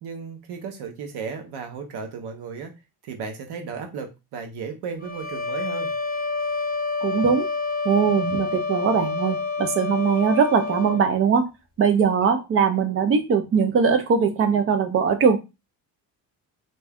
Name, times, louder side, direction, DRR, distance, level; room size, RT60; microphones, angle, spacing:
voice 1, 0.0-2.7 3.0-5.9, right 5 dB, 90° right, 4 dB, 0.9 m, -34 dB
sound 1, 5.0-11.1, left 4 dB, 25° left, 0.5 m, -28 dB
voice 2, 7.0-7.5 7.8-11.5 11.8-15.4, right 6 dB, 35° right, 7 dB, 0.4 m, -21 dB
2.6 x 2.2 x 3.4 m, 0.26 s
cardioid pair, 170°, 38 cm